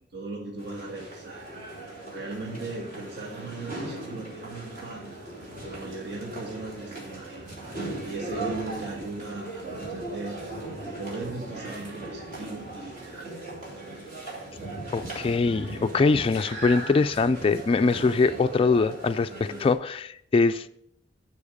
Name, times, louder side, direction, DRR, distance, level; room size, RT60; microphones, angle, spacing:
voice 1, 0.1-1.9 2.1-5.0 5.4-7.6 8.0-10.4 10.8-13.5, right 2 dB, 60° right, 1.6 m, -38 dB
sound 1, 0.6-19.7, right 2 dB, 45° right, 3.0 m, -38 dB
voice 2, 14.9-20.7, left 4 dB, 30° left, 0.3 m, -23 dB
12.0 x 4.7 x 5.1 m
head